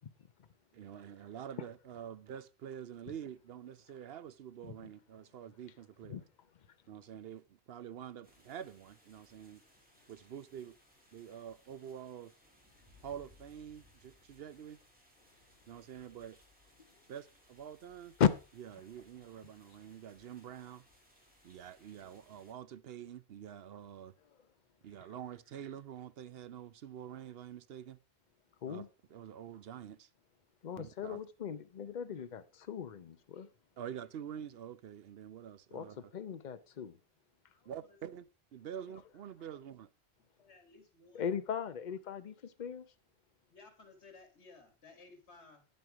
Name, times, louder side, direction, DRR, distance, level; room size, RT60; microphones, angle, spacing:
voice 1, 0.7-6.2 6.9-9.6 10.1-10.8 11.1-12.3 13.0-14.8 15.7-16.4 17.1-18.2 18.6-20.8 21.4-24.1 24.8-28.0 28.7-30.1 30.8-31.2 33.8-36.1 37.7-39.9, right 9 dB, 65° right, 0.8 m, -47 dB
sound 1, 8.2-22.5, left 1 dB, 10° right, 3.0 m, -65 dB
voice 2, 30.6-33.5 35.7-37.0 41.1-42.9, left 8 dB, 45° left, 0.8 m, -36 dB
voice 3, 37.5-38.0 38.8-38.9 39.5-39.6 40.3-41.4 43.5-45.6, left 3 dB, 85° left, 2.2 m, -58 dB
9.5 x 7.9 x 4.8 m
omnidirectional pair, 1.1 m